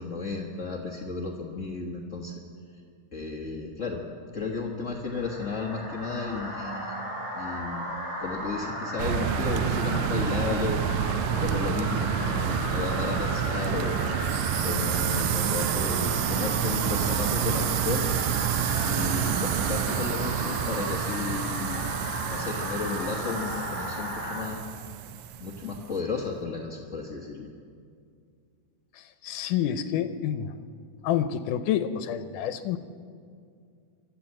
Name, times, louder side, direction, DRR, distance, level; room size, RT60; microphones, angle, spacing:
voice 1, 0.0-2.3 3.1-4.0 4.3-6.9 7.3-7.9 8.2-10.8 11.3-14.3 14.6-18.1 18.8-21.8 22.3-25.0 25.4-27.5, left 4 dB, 45° left, -1 dB, 0.9 m, -33 dB
sound 1, 5.1-24.4, equal, 35° right, 7.3 m, -35 dB
sound 2, 9.0-25.8, right 9 dB, 80° right, 2.1 m, -29 dB
voice 2, 28.9-30.5 31.0-32.8, left 10 dB, 90° left, 10 dB, 2.3 m, -28 dB
25.0 x 14.0 x 7.6 m, 2.3 s
omnidirectional pair, 3.6 m